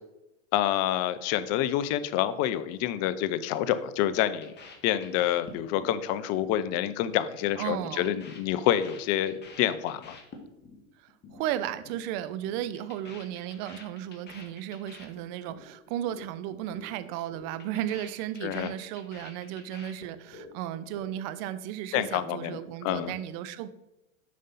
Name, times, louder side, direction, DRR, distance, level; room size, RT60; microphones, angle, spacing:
voice 1, 0.5-4.5 4.8-10.2 18.4-18.7 21.9-23.2, left 11 dB, 40° left, 14 dB, 0.6 m, -28 dB
sound 1, 4.4-6.0 6.2-6.6 6.8-7.2 7.4-10.8 11.1-11.4 11.7-12.0 12.3-15.7 15.9-16.3 16.5-16.9 17.1-20.5 20.8-21.4, left 4 dB, 25° left, 1.5 m, -49 dB
voice 2, 7.6-8.1 11.0-23.7, right 11 dB, 45° right, 13 dB, 0.6 m, -35 dB
7.5 x 5.3 x 4.1 m, 0.94 s
hypercardioid pair, 115°, 39 cm